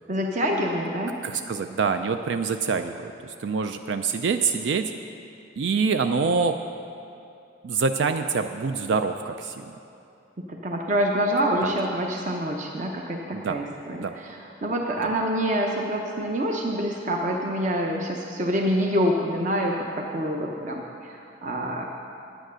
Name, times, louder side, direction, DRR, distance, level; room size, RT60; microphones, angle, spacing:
voice 1, 0.1-1.1 10.4-21.9, equal, 40° right, 0 dB, 0.7 m, -26 dB
voice 2, 1.2-4.9 5.6-6.6 7.6-9.6 11.6-11.7 13.3-13.6 14.0-14.1, right 5 dB, 70° right, 7 dB, 0.4 m, -25 dB
9.4 x 9.0 x 6.2 m, 2.6 s
head